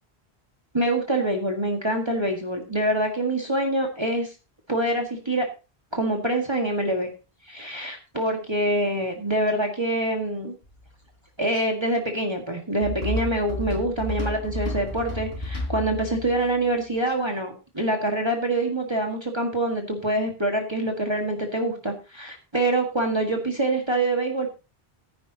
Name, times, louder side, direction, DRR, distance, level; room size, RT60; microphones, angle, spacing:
voice 1, 0.7-4.3 4.7-5.5 5.9-7.1 7.5-10.5 11.4-24.5, right 1 dB, 25° right, 2 dB, 1.8 m, -25 dB
sound 1, 10.6-10.9 12.8-16.4, left 2 dB, 70° left, 3.5 m, -31 dB
14.0 x 10.5 x 2.9 m, 0.30 s
omnidirectional pair, 1.1 m